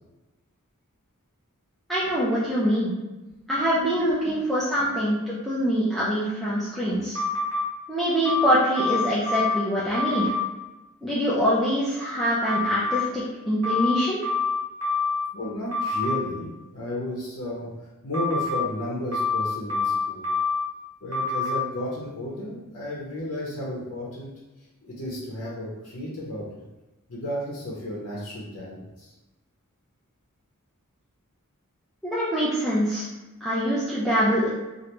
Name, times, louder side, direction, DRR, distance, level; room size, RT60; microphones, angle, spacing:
voice 1, 1.9-2.9 3.5-7.2 7.9-10.3 11.0-14.2 32.0-33.0 33.4-34.5, equal, ahead, -10 dB, 0.4 m, -24 dB
sound 1, 7.1-7.6 8.2-9.6 9.9-10.4 12.5-13.0 13.6-15.3 15.7-16.2 18.1-18.6 19.1-20.6 21.1-21.6, left 3 dB, 70° right, 1.1 m, -26 dB
voice 2, 15.3-17.7 18.0-20.2 21.0-24.3 24.8-26.6 27.1-29.1, left 1 dB, 60° left, -6 dB, 0.7 m, -33 dB
3.2 x 2.5 x 2.9 m, 1.1 s
head